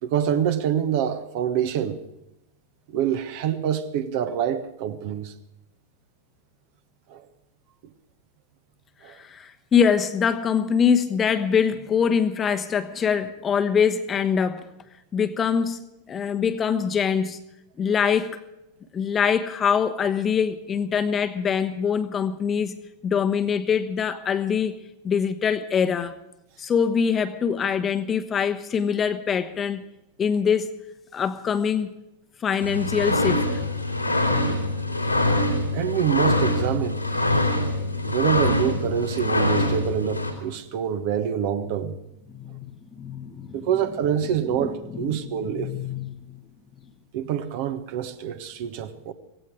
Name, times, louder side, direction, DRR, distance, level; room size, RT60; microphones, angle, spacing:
voice 1, 0.0-2.0 2.9-5.3 7.1-7.2 9.0-9.1 35.7-37.1 38.0-42.0 43.5-45.7 47.1-49.1, right 9 dB, 50° right, 1.3 m, -26 dB
voice 2, 9.0-14.7 15.1-17.4 17.8-18.4 18.9-22.8 23.0-24.8 25.0-26.1 26.6-29.8 30.2-30.7 31.1-31.9 32.4-33.6 42.3-43.7 44.5-46.4, left 7 dB, 25° left, 1.2 m, -24 dB
sound 1, 32.6-40.3, left 1 dB, 90° left, 3.2 m, -24 dB
17.0 x 17.0 x 4.8 m
figure-of-eight pair, 90°, 0 cm